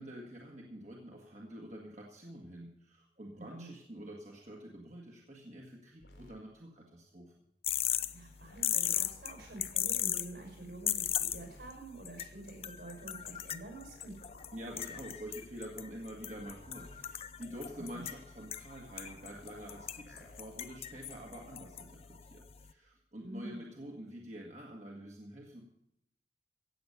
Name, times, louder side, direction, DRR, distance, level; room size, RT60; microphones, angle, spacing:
voice 1, 0.0-7.3 14.5-25.6, equal, 40° right, -2 dB, 1.7 m, -47 dB
voice 2, 3.3-3.7 8.1-14.1 17.8-18.0 23.2-23.6, right 2 dB, 70° right, 2 dB, 5.9 m, -47 dB
sound 1, 6.0-6.4 8.4-9.7 11.1-11.7 13.7-15.1 16.4-17.1 19.1-20.4 21.7-21.8, left 2 dB, 85° left, 3.8 m, -57 dB
sound 2, 7.6-22.7, left 11 dB, 35° left, 0.5 m, -39 dB
16.0 x 8.2 x 6.7 m, 0.79 s
head